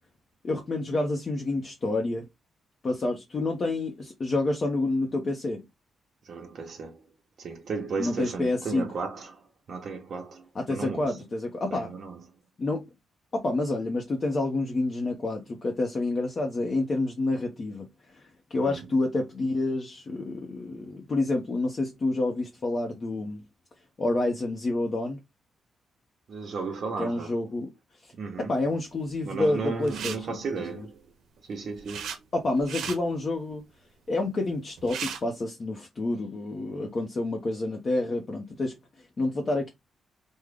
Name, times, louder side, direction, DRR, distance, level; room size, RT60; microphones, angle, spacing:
voice 1, 0.4-2.3 2.8-5.7 8.0-8.9 10.5-11.9 12.6-12.9 13.3-23.4 24.0-25.2 27.0-27.7 28.0-28.1 28.4-30.9 32.3-33.6 34.1-39.7, left 2 dB, 35° left, 0.6 m, -28 dB
voice 2, 6.2-7.0 7.4-11.2 11.7-12.2 18.6-18.9 26.3-27.4 28.2-28.5 29.2-31.0 31.5-32.1, right 4 dB, 55° right, 0.7 m, -35 dB
sound 1, 29.8-30.2 31.4-32.2 32.6-33.0 34.5-34.6 34.8-35.2, right 7 dB, 90° right, 0.6 m, -35 dB
3.5 x 2.1 x 3.3 m
wide cardioid pair, 145°, 0 cm